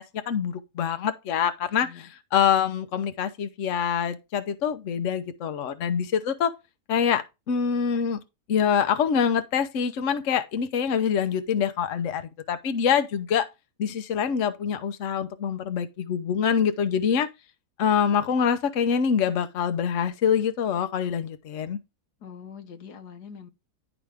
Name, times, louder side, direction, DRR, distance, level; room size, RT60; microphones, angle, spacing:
voice 1, 0.0-6.5 6.9-8.2 8.5-13.5 13.8-17.3 17.8-21.8, left 7 dB, 55° left, 1.1 m, -25 dB
voice 2, 22.2-23.5, left 7 dB, 80° left, 1.6 m, -43 dB
11.0 x 5.0 x 3.5 m
omnidirectional pair, 1.7 m